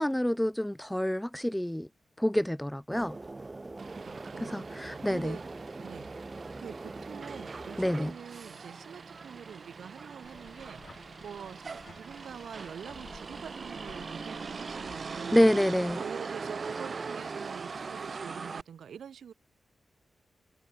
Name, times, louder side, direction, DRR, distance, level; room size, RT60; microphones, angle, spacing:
voice 1, 0.0-1.9 2.2-3.2 4.4-5.4 7.8-8.1 15.3-16.0, equal, 5° left, 0.4 m, -27 dB
sound 1, 2.9-8.1, right 2 dB, 30° right, 0.9 m, -43 dB
Motor vehicle (road), 3.8-18.6, right 4 dB, 50° right, 0.7 m, -41 dB
voice 2, 4.0-5.4 5.8-6.1 6.6-15.5 16.0-19.3, right 8 dB, 90° right, 2.5 m, -45 dB
sound 2, 10.2-15.3, left 5 dB, 50° left, 7.4 m, -54 dB
cardioid pair, 85°, 0 cm